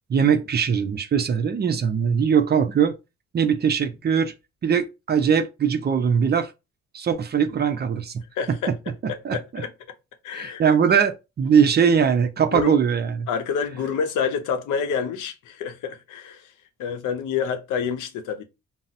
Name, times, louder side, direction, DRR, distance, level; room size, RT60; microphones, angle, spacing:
voice 1, 0.1-2.9 3.3-4.3 4.6-6.5 6.9-8.2 8.5-8.8 9.0-9.6 10.3-13.3, right 7 dB, 35° right, 0.5 m, -21 dB
voice 2, 8.3-8.7 9.3-9.7 10.2-10.6 12.5-12.7 13.3-16.4 16.8-18.4, left 6 dB, 80° left, 0.6 m, -28 dB
3.9 x 2.0 x 2.5 m
cardioid pair, 90°, 30 cm